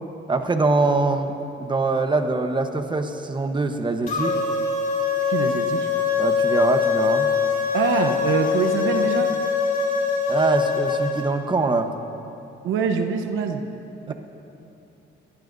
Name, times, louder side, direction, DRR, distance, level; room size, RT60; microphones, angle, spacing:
voice 1, 0.3-1.3 1.6-4.4 6.2-7.3 10.3-11.9 14.1-14.2, right 3 dB, 25° right, 6 dB, 1.1 m, -23 dB
sound 1, 4.1-11.3, left 6 dB, 45° left, 3.8 m, -23 dB
voice 2, 5.3-5.9 7.7-9.3 12.6-13.6 14.1-14.2, right 6 dB, 90° right, 5 dB, 1.0 m, -24 dB
22.5 x 18.5 x 2.7 m, 2.8 s
cardioid pair, 90°, 20 cm